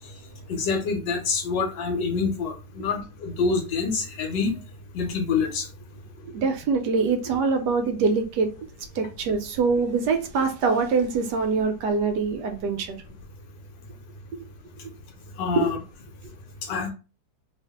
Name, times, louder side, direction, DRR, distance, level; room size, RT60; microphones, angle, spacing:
voice 1, 0.5-4.5 4.9-5.7 15.4-15.8 16.6-16.9, left 5 dB, 80° left, 1.4 m, -26 dB
voice 2, 6.3-8.5 8.9-13.0 15.6-15.7, right 4 dB, 75° right, 1.1 m, -24 dB
2.9 x 2.5 x 3.4 m
omnidirectional pair, 2.0 m